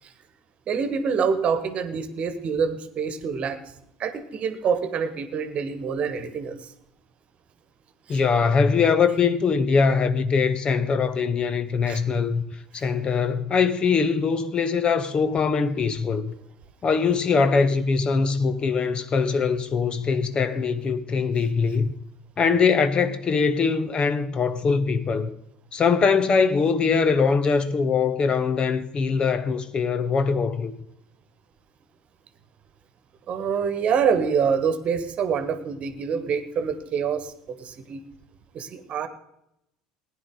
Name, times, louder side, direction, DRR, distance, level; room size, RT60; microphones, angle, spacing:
voice 1, 0.7-3.6 4.0-6.7 8.1-8.2 11.8-12.0 12.7-12.8 33.3-38.0 38.5-39.1, right 6 dB, 40° right, 1.4 m, -26 dB
voice 2, 8.1-12.4 12.7-16.3 16.8-21.9 22.4-25.3 25.7-30.7, left 5 dB, 30° left, 0.9 m, -22 dB
18.5 x 10.5 x 3.8 m
figure-of-eight pair, 65°, 3 cm